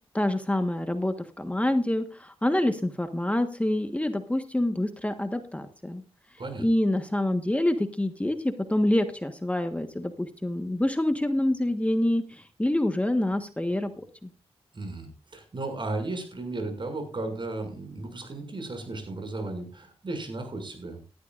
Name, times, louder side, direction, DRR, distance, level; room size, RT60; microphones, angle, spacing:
voice 1, 0.1-6.0 6.6-14.3, left 1 dB, 10° left, 7 dB, 1.4 m, -26 dB
voice 2, 14.7-21.0, right 2 dB, 50° right, 5 dB, 6.5 m, -35 dB
18.5 x 13.0 x 2.5 m, 0.32 s
cardioid pair, 60°, 11 cm